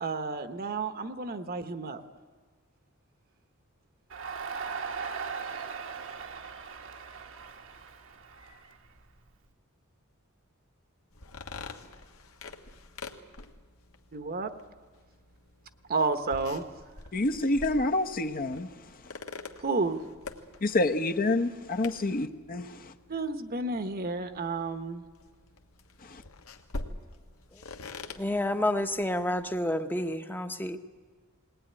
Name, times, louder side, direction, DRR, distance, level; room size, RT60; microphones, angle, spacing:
voice 1, 0.0-2.0 14.1-14.5 15.9-16.6 19.6-20.0 23.1-25.0, right 3 dB, 45° right, 1.1 m, -31 dB
Crowd, 4.1-9.3, right 5 dB, 65° right, 1.3 m, -39 dB
sound 1, 11.1-29.6, left 3 dB, 80° left, 1.5 m, -46 dB
voice 2, 17.1-18.7 20.6-22.9 26.0-26.2, left 2 dB, 45° left, 0.9 m, -28 dB
voice 3, 28.0-30.8, left 1 dB, 10° left, 0.9 m, -30 dB
20.5 x 18.5 x 9.7 m
head